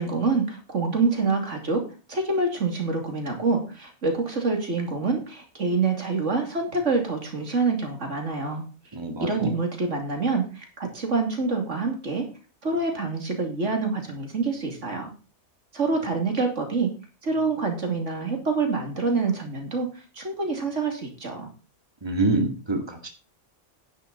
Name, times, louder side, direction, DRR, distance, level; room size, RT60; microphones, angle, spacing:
voice 1, 0.0-8.6 9.2-12.3 12.6-15.1 15.7-16.9 17.2-19.9 20.2-21.5, right 4 dB, 80° right, 3 dB, 3.0 m, -26 dB
voice 2, 8.9-9.5 22.0-23.1, right 2 dB, 20° right, 4 dB, 1.9 m, -26 dB
10.5 x 10.5 x 4.1 m, 0.33 s
omnidirectional pair, 1.2 m